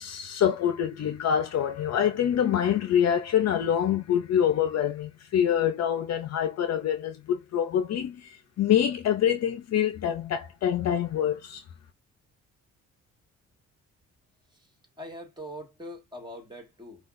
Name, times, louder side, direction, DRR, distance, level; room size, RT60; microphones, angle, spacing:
voice 1, 0.0-11.6, left 9 dB, 60° left, 0.7 m, -26 dB
voice 2, 15.0-17.1, equal, 15° right, 1.9 m, -42 dB
5.6 x 2.4 x 2.6 m
cardioid pair, 90°, 30 cm